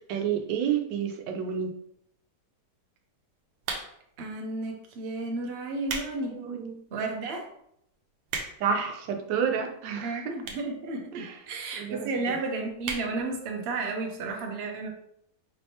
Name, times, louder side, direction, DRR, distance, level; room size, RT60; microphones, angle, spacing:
voice 1, 0.1-1.7 6.3-6.8 8.6-10.3 11.1-11.4 11.7-12.4, right 7 dB, 90° right, 5 dB, 1.3 m, -30 dB
sound 1, 3.6-4.2 4.9-5.1 5.6-6.1 6.6-6.7 7.3-7.4 7.6-7.7 7.9-8.8 9.6-9.7 10.4-10.8 11.1-11.2 11.3-11.4 11.7-11.8 12.1-12.3 12.8-13.1 13.5-13.6 13.8-13.9, right 4 dB, 70° right, 1.3 m, -35 dB
voice 2, 4.2-6.4 6.9-7.5 10.0-14.9, right 3 dB, 50° right, 2 dB, 0.8 m, -33 dB
5.2 x 3.2 x 2.8 m, 0.72 s
omnidirectional pair, 1.9 m